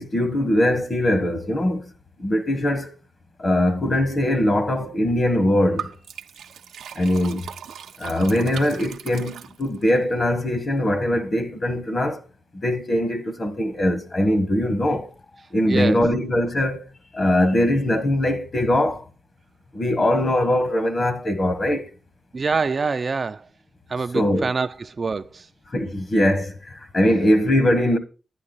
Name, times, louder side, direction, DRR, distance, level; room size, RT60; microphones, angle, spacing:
voice 1, 0.0-1.9 2.2-2.9 3.4-5.9 6.9-7.5 8.0-12.2 12.5-15.1 15.5-16.8 17.1-19.0 19.7-21.9 24.1-24.5 25.7-28.0, left 1 dB, 35° left, 1.4 m, -21 dB
Liquid, 5.8-10.0, right 8 dB, 85° right, 0.7 m, -38 dB
voice 2, 15.7-16.0 22.3-23.5 23.9-25.5, right 4 dB, 40° right, 0.4 m, -25 dB
11.0 x 9.8 x 4.0 m
cardioid pair, 85°, 0 cm